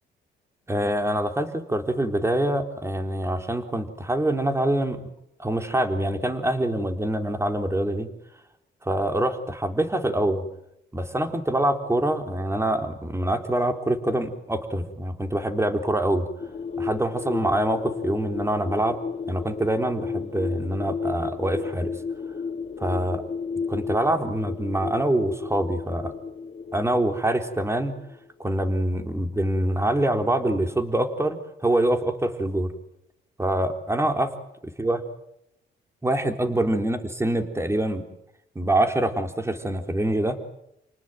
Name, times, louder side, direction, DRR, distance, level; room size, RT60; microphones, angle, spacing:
voice 1, 0.7-5.0 5.4-8.1 8.8-10.4 10.9-16.2 16.8-19.0 19.3-21.9 22.8-23.2 23.7-26.1 26.7-28.0 28.4-32.7 33.4-34.3 34.8-35.0 36.0-38.0 38.6-40.4, right 1 dB, 15° right, 7 dB, 3.8 m, -25 dB
sound 1, 16.4-28.3, left 5 dB, 35° left, 3.0 m, -33 dB
30.0 x 19.5 x 9.1 m, 0.82 s
cardioid pair, 90°, 20 cm